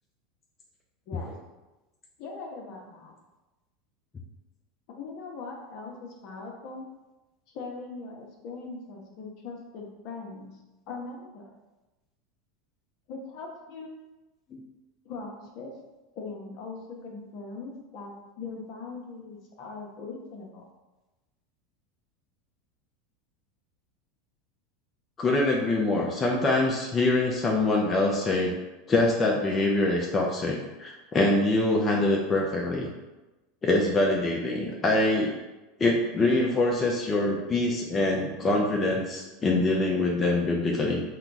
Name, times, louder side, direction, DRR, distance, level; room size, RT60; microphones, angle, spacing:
voice 1, 2.2-3.1 4.9-6.9 7.5-10.5 10.9-11.5 13.1-13.9 15.0-15.7 16.1-20.6, left 4 dB, 60° left, 0 dB, 0.9 m, -40 dB
voice 2, 25.2-28.5 28.9-32.9 33.6-35.4 35.8-41.0, left 2 dB, 25° left, -1 dB, 0.7 m, -24 dB
4.2 x 2.3 x 4.0 m, 1.1 s
hypercardioid pair, 95°, 0 cm